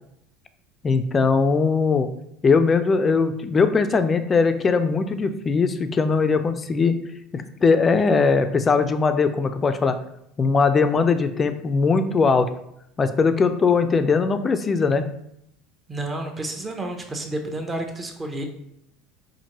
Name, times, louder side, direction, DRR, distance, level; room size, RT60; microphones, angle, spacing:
voice 1, 0.8-2.1 2.4-7.0 7.3-10.0 10.4-12.5 13.0-15.1, left 4 dB, 25° left, 9 dB, 0.3 m, -20 dB
voice 2, 15.9-18.4, right 1 dB, 20° right, 4 dB, 0.7 m, -30 dB
4.3 x 2.6 x 2.9 m, 0.76 s
supercardioid pair, 105°, 0 cm